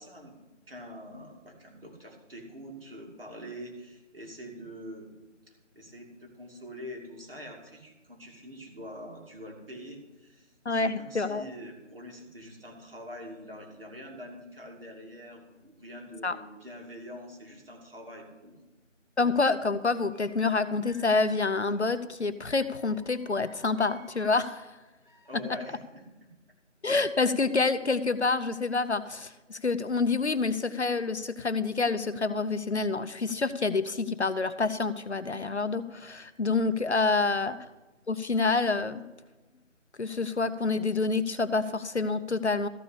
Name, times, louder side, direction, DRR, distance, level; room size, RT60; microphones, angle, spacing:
voice 1, 0.0-5.1 5.5-18.6 25.2-26.3 37.1-37.3, equal, 50° right, 0 dB, 2.4 m, -45 dB
voice 2, 10.7-11.4 16.2-16.4 19.2-24.7 26.8-37.6 38.1-39.0 40.0-42.7, left 3 dB, 60° left, 12 dB, 0.7 m, -27 dB
sound 1, 20.1-20.4 20.8-22.0 22.4-24.5 25.0-25.6, equal, 40° left, 1.4 m, -56 dB
14.0 x 4.9 x 8.3 m, 1.1 s
figure-of-eight pair, 175°, 38 cm